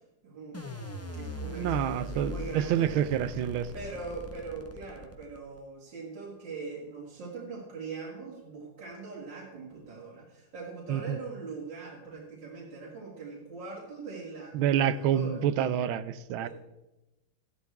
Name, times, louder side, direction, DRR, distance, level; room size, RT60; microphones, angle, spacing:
voice 1, 0.2-2.9 3.7-15.4 16.4-16.5, right 4 dB, 60° right, -5 dB, 3.0 m, -41 dB
sound 1, 0.5-5.6, left 2 dB, 10° left, 0.8 m, -40 dB
voice 2, 1.5-3.7 10.9-11.2 14.5-16.5, right 10 dB, 85° right, 15 dB, 1.5 m, -28 dB
15.0 x 12.0 x 3.5 m, 0.98 s
omnidirectional pair, 2.2 m